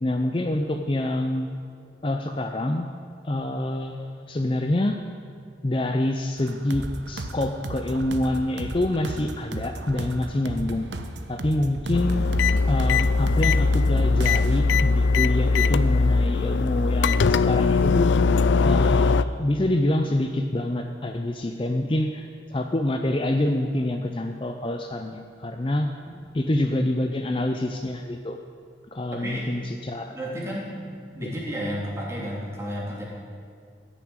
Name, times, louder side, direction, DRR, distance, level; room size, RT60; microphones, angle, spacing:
voice 1, 0.0-1.5 2.0-2.9 3.2-5.0 5.6-10.9 11.3-12.2 12.7-18.1 18.6-25.9 26.3-28.4 28.9-30.1 31.2-31.3, left 1 dB, 30° left, 5 dB, 0.5 m, -26 dB
sound 1, 6.4-14.6, right 1 dB, 75° right, 0.9 m, -35 dB
sound 2, 11.9-19.2, left 4 dB, 80° left, 0.4 m, -20 dB
voice 2, 26.9-27.4 29.1-29.5 30.1-30.8 31.1-33.0, equal, 15° right, -4 dB, 2.9 m, -33 dB
15.0 x 7.1 x 9.0 m, 2.2 s
head